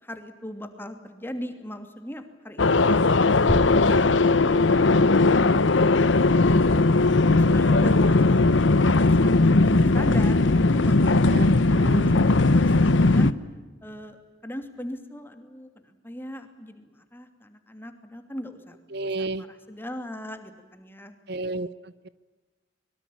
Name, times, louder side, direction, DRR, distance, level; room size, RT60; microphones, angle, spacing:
voice 1, 0.0-3.3 3.6-6.7 7.3-8.4 8.9-13.3 13.8-21.1, equal, 10° left, 7 dB, 2.7 m, -39 dB
sound 1, 2.6-13.3, left 3 dB, 85° left, 0.9 m, -19 dB
sound 2, 3.4-10.1 10.4-10.7 11.1-11.3 11.8-12.0, equal, 35° left, 4.4 m, -37 dB
voice 2, 11.3-12.2 18.9-19.4 21.3-22.1, right 2 dB, 60° right, 16 dB, 0.8 m, -32 dB
24.0 x 23.0 x 8.8 m, 1.3 s
head